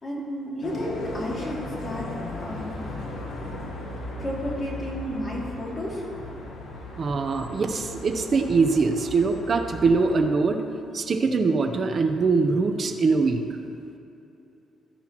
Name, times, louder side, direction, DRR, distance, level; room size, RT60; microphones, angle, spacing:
voice 1, 0.0-2.1 2.4-2.8 4.2-6.0, equal, 35° left, -4 dB, 2.7 m, -32 dB
sound 1, 0.6-10.2, left 2 dB, 80° left, 1.8 m, -36 dB
voice 2, 7.0-10.6 10.9-13.4, right 4 dB, 45° right, 6 dB, 0.8 m, -22 dB
13.5 x 10.0 x 3.0 m, 2.8 s
cardioid pair, 90°, 0 cm